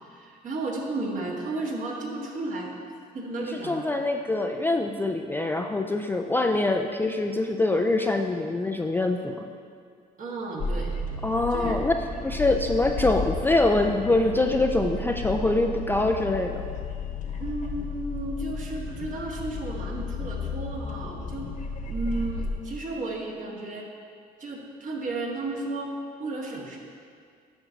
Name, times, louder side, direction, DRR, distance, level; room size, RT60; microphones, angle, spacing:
voice 1, 0.0-2.7 3.1-3.8 10.2-11.0 11.5-11.8 17.4-21.5 21.8-23.9 24.4-26.8, right 2 dB, 50° right, -1 dB, 1.6 m, -33 dB
voice 2, 3.6-9.4 11.2-11.9 12.2-16.6, left 2 dB, 10° left, 4 dB, 0.3 m, -24 dB
sound 1, 10.6-22.5, left 3 dB, 50° left, 1.1 m, -33 dB
9.6 x 6.1 x 4.0 m, 2.2 s
cardioid pair, 110°, 17 cm